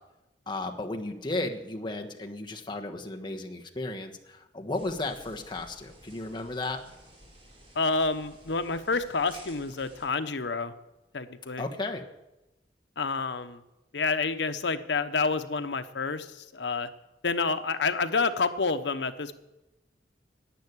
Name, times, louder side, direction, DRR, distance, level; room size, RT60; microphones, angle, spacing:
voice 1, 0.5-6.8 11.6-12.0, left 2 dB, 25° left, 3 dB, 1.3 m, -34 dB
sound 1, 4.7-10.1, right 1 dB, 35° right, 4.6 m, -53 dB
voice 2, 7.7-10.7 11.1-11.7 13.0-13.6 13.9-16.9 17.2-19.3, left 4 dB, 90° left, 9 dB, 0.9 m, -28 dB
11.5 x 8.3 x 9.8 m, 0.97 s
head